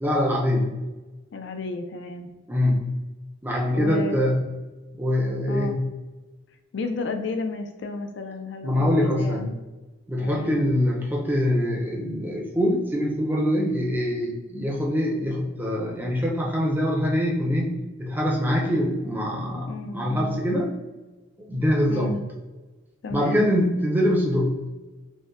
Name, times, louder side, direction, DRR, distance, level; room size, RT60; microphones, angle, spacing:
voice 1, 0.0-0.8 2.5-2.9 3.4-4.4 5.0-5.8 8.6-9.5 10.1-20.7 21.5-22.2 23.1-24.6, equal, 10° right, -1 dB, 0.5 m, -24 dB
voice 2, 1.3-2.3 3.7-4.2 5.5-5.8 6.7-9.4 10.2-10.6 19.7-20.4 21.9-22.2 23.0-23.5, left 3 dB, 60° left, 6 dB, 0.4 m, -32 dB
5.2 x 2.1 x 2.4 m, 1.2 s
head